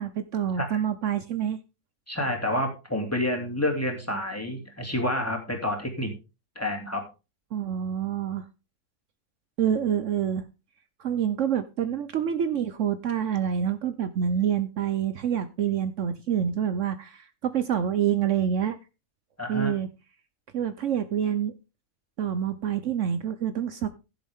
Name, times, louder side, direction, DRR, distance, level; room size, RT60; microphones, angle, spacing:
voice 1, 0.0-1.6 7.5-8.5 9.6-10.5 11.0-18.8 19.5-19.9 20.5-21.5 22.2-23.9, right 9 dB, 65° right, 12 dB, 1.0 m, -27 dB
voice 2, 2.1-6.1 6.5-7.0 19.4-19.7, left 1 dB, 10° left, 2 dB, 2.8 m, -29 dB
15.5 x 7.7 x 3.6 m, 0.29 s
omnidirectional pair, 1.4 m